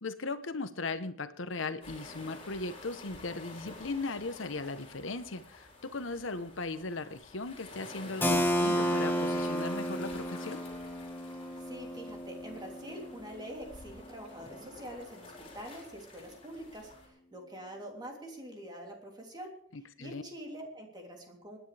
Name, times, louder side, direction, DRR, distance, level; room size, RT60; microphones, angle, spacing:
voice 1, 0.0-10.6 19.7-20.2, left 3 dB, 80° left, 11 dB, 1.0 m, -38 dB
sound 1, 1.8-17.1, left 2 dB, 30° left, 4.4 m, -49 dB
Keyboard (musical), 8.2-13.8, equal, 10° left, 1.2 m, -32 dB
voice 2, 11.6-19.5 20.0-21.6, equal, 20° right, 1 dB, 3.1 m, -45 dB
26.0 x 10.0 x 3.4 m, 0.62 s
head